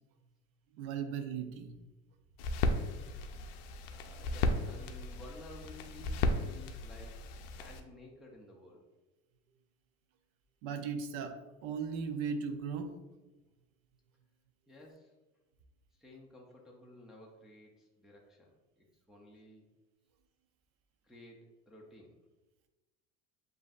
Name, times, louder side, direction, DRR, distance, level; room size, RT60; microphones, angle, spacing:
voice 1, 0.8-1.8 10.6-11.4 11.6-13.0, right 6 dB, 70° right, 7 dB, 0.6 m, -37 dB
sound 1, 2.4-7.8, left 2 dB, 85° left, 0.6 m, -35 dB
voice 2, 3.9-8.8 14.7-15.1 16.0-19.7 21.0-22.2, left 2 dB, ahead, -3 dB, 0.4 m, -54 dB
7.3 x 2.6 x 2.4 m, 1.1 s
cardioid pair, 155°, 29 cm